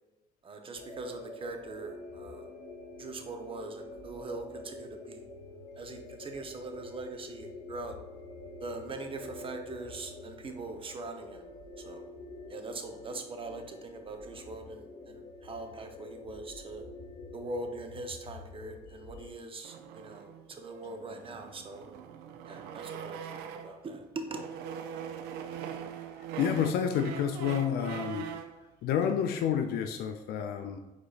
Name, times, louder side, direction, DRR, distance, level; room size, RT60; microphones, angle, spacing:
voice 1, 0.4-2.5 3.0-5.2 5.8-8.0 8.6-11.5 11.8-12.0 12.5-16.8 17.3-21.9 22.5-23.2 23.6-24.4, right 2 dB, 35° right, 5 dB, 0.7 m, -42 dB
sound 1, 0.7-19.3, left 2 dB, 50° left, 1.2 m, -47 dB
sound 2, 19.6-23.8 24.3-28.6, right 8 dB, 85° right, 0.4 m, -42 dB
voice 2, 26.4-28.3 28.8-30.8, left 8 dB, 70° left, 6 dB, 0.4 m, -29 dB
4.8 x 4.0 x 2.4 m, 1.1 s
cardioid pair, 90°, 16 cm